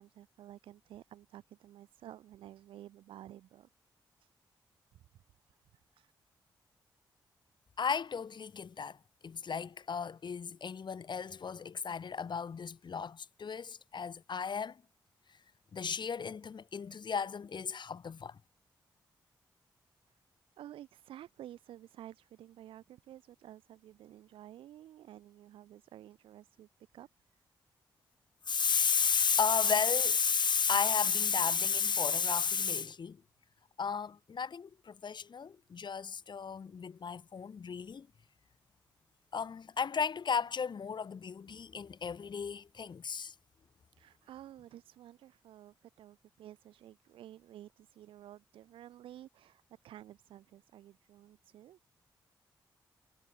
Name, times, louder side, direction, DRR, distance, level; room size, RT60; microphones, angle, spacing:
voice 1, 0.0-3.7 4.2-4.3 5.4-6.1 20.6-27.1 44.0-51.8, right 12 dB, 90° right, 7.2 m, -52 dB
voice 2, 7.8-9.0 9.2-14.8 15.7-18.4 28.5-33.2 33.8-38.1 39.3-43.3, left 6 dB, 60° left, 3.4 m, -33 dB
supercardioid pair, 45°, 9 cm